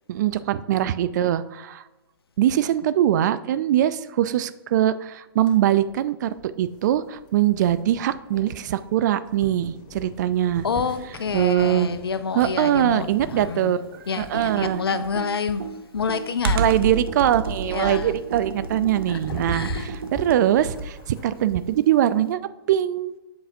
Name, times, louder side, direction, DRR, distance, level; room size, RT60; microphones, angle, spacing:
voice 1, 0.1-1.8 2.4-10.7 11.3-11.9 12.4-13.8 14.2-15.0 16.5-22.4 22.7-23.1, right 11 dB, 50° right, 0.4 m, -22 dB
sound 1, 5.5-21.8, equal, 30° left, 2.1 m, -41 dB
voice 2, 10.6-13.8 14.1-15.6 15.9-16.6 17.6-18.2 19.1-19.2 19.5-19.9, left 5 dB, 80° left, 0.5 m, -28 dB
Computer keyboard, 14.2-21.1, right 3 dB, 70° right, 0.7 m, -30 dB
7.8 x 5.6 x 2.7 m
figure-of-eight pair, 115°, 13 cm